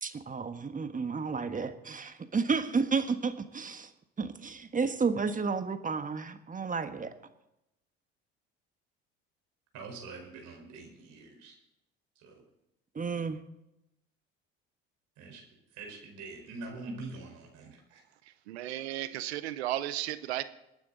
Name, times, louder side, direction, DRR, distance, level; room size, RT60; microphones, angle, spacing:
voice 1, 0.0-3.9 4.2-7.1 12.9-13.4, right 5 dB, 25° right, 8 dB, 1.4 m, -32 dB
voice 2, 9.7-11.5 12.2-12.4 15.2-15.4 15.8-18.0, right 3 dB, 65° right, 1 dB, 4.6 m, -44 dB
voice 3, 18.5-20.4, right 14 dB, 85° right, 14 dB, 0.8 m, -34 dB
22.5 x 9.4 x 3.9 m, 0.87 s
hypercardioid pair, 65°, 31 cm